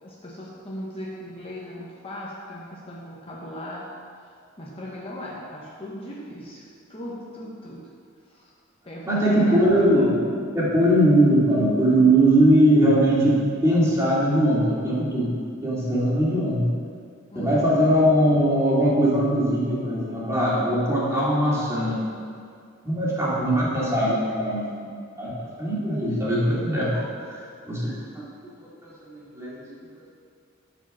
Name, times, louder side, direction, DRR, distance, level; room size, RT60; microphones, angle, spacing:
voice 1, 0.0-4.0 4.6-7.9 8.3-8.5 8.8-9.8 17.3-17.8, left 1 dB, 30° left, -5 dB, 1.1 m, -38 dB
voice 2, 9.1-15.4 15.6-16.7 17.3-22.0 22.8-25.3 25.6-26.9 27.2-28.0 28.6-29.5, right 1 dB, 15° right, -8 dB, 2.6 m, -21 dB
12.5 x 5.0 x 6.2 m, 2.2 s
head